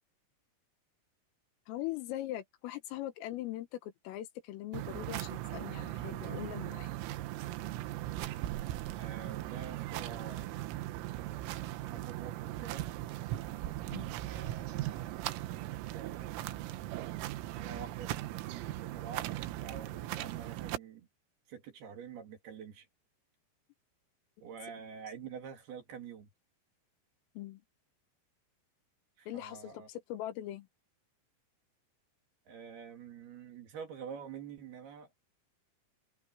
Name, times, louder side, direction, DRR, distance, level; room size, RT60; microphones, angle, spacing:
voice 1, 1.7-6.9 13.9-14.2 27.4-27.6 29.3-30.7, left 14 dB, 80° left, 3.9 m, -41 dB
sound 1, 4.7-20.8, right 15 dB, 85° right, 3.7 m, -39 dB
voice 2, 8.9-10.7 11.8-12.9 14.2-16.5 17.4-21.1 21.5-22.9 24.4-26.3 29.2-29.9 32.5-35.1, right 7 dB, 55° right, 3.9 m, -48 dB
omnidirectional pair, 5.9 m